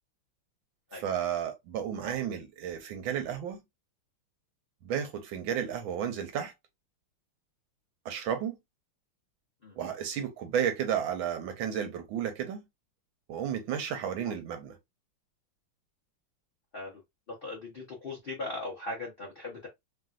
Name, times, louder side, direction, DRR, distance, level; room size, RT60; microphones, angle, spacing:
voice 1, 1.0-3.6 4.8-6.5 8.0-8.5 9.8-12.6 13.3-14.8, right 8 dB, 75° right, 1.4 m, -32 dB
voice 2, 17.3-19.7, left 2 dB, 70° left, 0.5 m, -39 dB
3.5 x 2.6 x 2.3 m
omnidirectional pair, 2.3 m